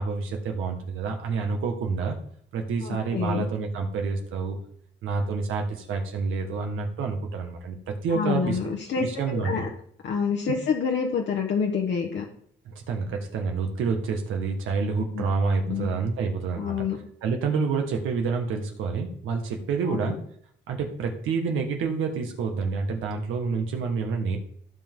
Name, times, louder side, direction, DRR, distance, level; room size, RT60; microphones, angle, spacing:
voice 1, 0.0-2.2 2.5-4.6 5.0-8.7 9.0-9.6 12.7-16.8 17.2-20.2 20.7-24.4, right 4 dB, 85° right, 2 dB, 1.8 m, -28 dB
voice 2, 2.8-3.5 8.1-9.7 10.0-12.3 15.1-15.2 15.7-15.9 16.6-17.0 19.8-20.2, left 6 dB, 65° left, 0 dB, 1.4 m, -27 dB
15.0 x 5.4 x 3.8 m, 0.64 s
cardioid pair, 90°, 20 cm